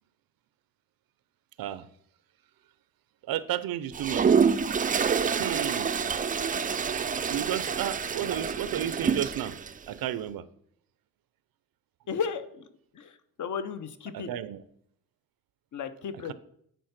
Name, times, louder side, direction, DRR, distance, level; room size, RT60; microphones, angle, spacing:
voice 1, 3.3-4.2 5.4-5.9 7.3-9.5 9.9-10.4 14.1-14.6, right 11 dB, 85° right, 16 dB, 0.6 m, -32 dB
Toilet flush, 3.9-9.7, right 6 dB, 25° right, 0.3 m, -27 dB
voice 2, 12.1-12.7 12.9-14.3 15.7-16.3, left 6 dB, 60° left, 11 dB, 0.7 m, -34 dB
9.2 x 4.4 x 5.8 m, 0.69 s
wide cardioid pair, 165°, 34 cm